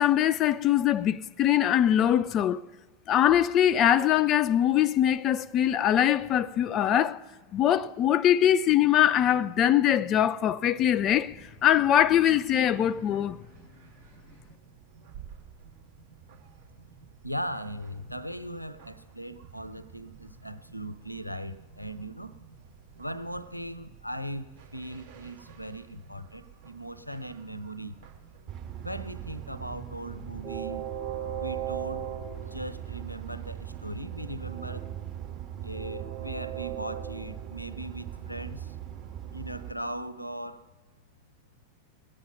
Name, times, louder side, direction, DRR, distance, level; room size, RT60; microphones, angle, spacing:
voice 1, 0.0-2.6 3.1-7.2 7.5-13.4, left 11 dB, 30° left, 0.4 m, -23 dB
sound 1, 11.1-29.5, right 7 dB, 60° right, 1.8 m, -53 dB
voice 2, 17.2-22.4 23.0-28.0 28.8-30.8 31.4-32.1 32.4-34.9 35.6-38.8 39.3-40.6, right 1 dB, 90° left, 0.6 m, -38 dB
Train, 28.5-39.7, right 10 dB, 40° right, 2.2 m, -38 dB
21.0 x 8.8 x 5.9 m
figure-of-eight pair, 90°, 0 cm